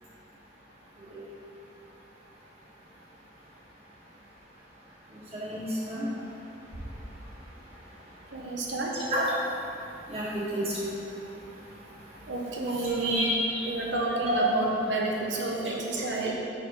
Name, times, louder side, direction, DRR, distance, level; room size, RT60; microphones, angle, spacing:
voice 1, 5.3-6.0 9.1-9.3 10.1-10.9 12.7-13.6 14.0-14.4, equal, 30° right, -8 dB, 1.6 m, -30 dB
voice 2, 8.3-9.1 12.3-13.3 13.6-16.3, right 2 dB, 75° right, -2 dB, 1.0 m, -30 dB
6.1 x 5.0 x 4.9 m, 2.6 s
head